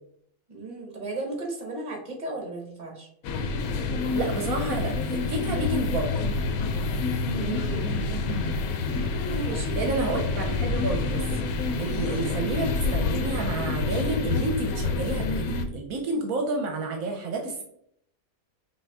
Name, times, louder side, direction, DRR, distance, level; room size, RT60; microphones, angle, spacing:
voice 1, 0.5-3.1 7.3-8.0 9.2-10.4, right 2 dB, 35° right, 0 dB, 1.2 m, -35 dB
sound 1, 3.2-15.7, left 3 dB, 75° left, 1.0 m, -28 dB
voice 2, 4.1-6.3 9.8-11.4 11.8-17.6, right 3 dB, 75° right, 3 dB, 1.1 m, -30 dB
sound 2, 4.2-9.4, left 9 dB, 30° left, 0.3 m, -37 dB
5.6 x 2.7 x 3.4 m, 0.71 s
omnidirectional pair, 1.5 m